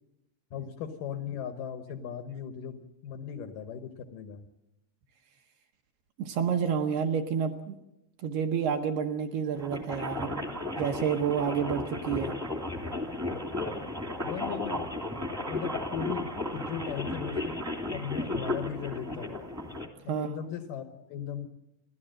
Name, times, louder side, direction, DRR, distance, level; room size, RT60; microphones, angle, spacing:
voice 1, 0.5-4.5 14.2-14.8 15.5-17.6 17.9-19.5 20.0-21.5, left 8 dB, 85° left, 8 dB, 1.9 m, -38 dB
voice 2, 6.2-7.8 8.2-10.3 10.8-12.3 20.1-20.3, right 7 dB, 70° right, 4 dB, 2.6 m, -29 dB
sound 1, 9.6-19.9, left 2 dB, 10° right, 0.8 m, -34 dB
29.5 x 12.0 x 7.7 m, 0.88 s
omnidirectional pair, 5.4 m